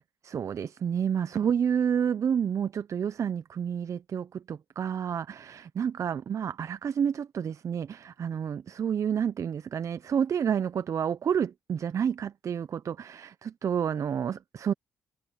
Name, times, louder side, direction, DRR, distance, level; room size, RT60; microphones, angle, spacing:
voice 1, 0.2-14.7, right 8 dB, 55° right, 0.7 m, -29 dB
supercardioid pair, 50°, 6 cm